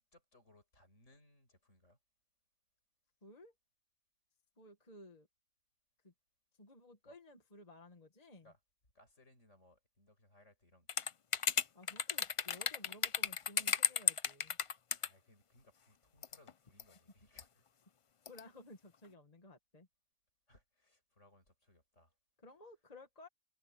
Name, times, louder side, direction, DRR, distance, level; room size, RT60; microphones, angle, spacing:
voice 1, 0.0-2.0 7.0-7.2 8.4-8.6 8.9-10.9 15.0-17.6 20.5-22.2, left 1 dB, 70° left, 7.8 m, -66 dB
voice 2, 3.2-3.5 4.6-5.3 6.0-6.1 6.6-8.5 11.7-14.6 18.2-19.9 22.4-23.3, left 2 dB, 30° left, 1.9 m, -56 dB
sound 1, 10.9-15.1 16.2-16.5 16.8-16.9 17.4-17.5 18.3-18.4, left 7 dB, 55° left, 0.3 m, -33 dB
omnidirectional pair, 1.3 m